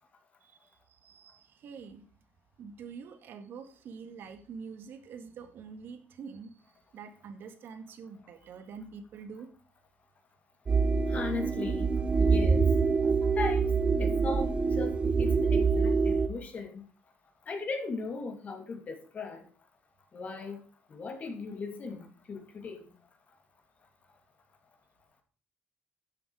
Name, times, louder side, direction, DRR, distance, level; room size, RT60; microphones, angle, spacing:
voice 1, 0.9-2.0 2.6-6.5 6.9-9.5, right 5 dB, 65° right, 8 dB, 2.0 m, -45 dB
sound 1, 10.7-16.3, right 5 dB, 25° right, 1.1 m, -25 dB
voice 2, 11.1-11.9 12.2-12.6 13.0-13.7 14.0-16.8 17.5-19.4 20.1-20.6 20.9-22.8, left 4 dB, 40° left, 5 dB, 2.7 m, -37 dB
12.5 x 8.0 x 4.8 m, 0.41 s
cardioid pair, 130°, 4 cm